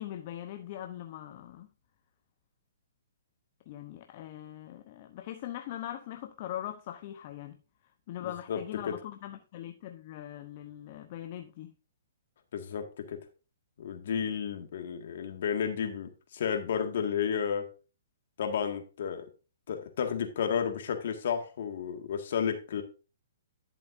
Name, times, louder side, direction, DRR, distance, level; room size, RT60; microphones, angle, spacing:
voice 1, 0.0-1.7 3.7-7.6 8.1-11.7, left 12 dB, 45° left, 0.7 m, -41 dB
voice 2, 8.2-8.6 8.8-9.0 12.5-13.2 13.8-17.7 18.4-19.3 19.7-22.8, left 7 dB, 65° left, 1.7 m, -32 dB
11.0 x 7.1 x 2.6 m
hypercardioid pair, 140°, 0 cm